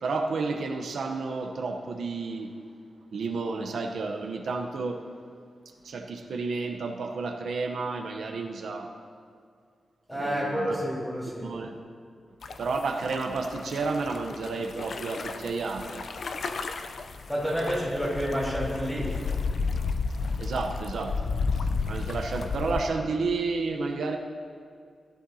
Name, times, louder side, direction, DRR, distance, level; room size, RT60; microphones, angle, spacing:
voice 1, 0.0-2.5 3.1-5.1 5.8-8.9 10.1-10.8 11.4-11.8 12.6-16.1 20.4-24.2, right 4 dB, 80° right, 3 dB, 0.8 m, -31 dB
voice 2, 10.1-11.5 17.3-19.1, equal, 5° left, -6 dB, 3.4 m, -29 dB
sound 1, 12.4-22.8, left 4 dB, 60° left, 0.5 m, -32 dB
17.0 x 12.0 x 2.8 m, 2.2 s
wide cardioid pair, 170°, 0 cm